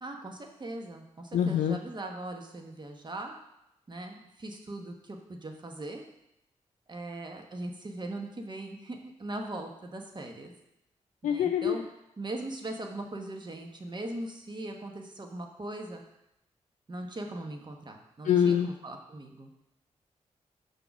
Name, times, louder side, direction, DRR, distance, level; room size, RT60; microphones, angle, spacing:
voice 1, 0.0-3.3 3.9-6.1 6.9-10.5 11.2-11.8 12.2-16.0 16.9-19.5, right 1 dB, 35° right, 3 dB, 1.1 m, -40 dB
voice 2, 1.3-1.8 11.2-11.8 18.2-18.7, left 9 dB, 85° left, 4 dB, 0.4 m, -25 dB
5.4 x 4.0 x 6.0 m, 0.84 s
cardioid pair, 60°, 13 cm